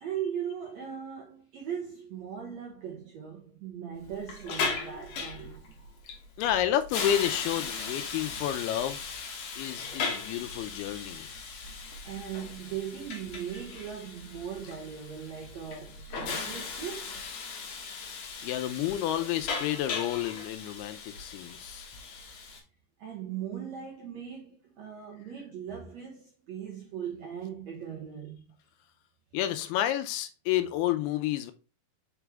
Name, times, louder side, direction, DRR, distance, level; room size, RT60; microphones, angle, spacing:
voice 1, 0.0-5.9 12.0-17.2 23.0-28.4, right 8 dB, 75° right, 1.6 m, -39 dB
Hiss, 4.0-22.6, left 5 dB, 65° left, 1.8 m, -38 dB
voice 2, 6.4-9.2 9.6-11.3 18.4-21.9 29.3-31.5, left 12 dB, 80° left, 2.6 m, -30 dB
6.0 x 4.8 x 3.4 m
omnidirectional pair, 4.6 m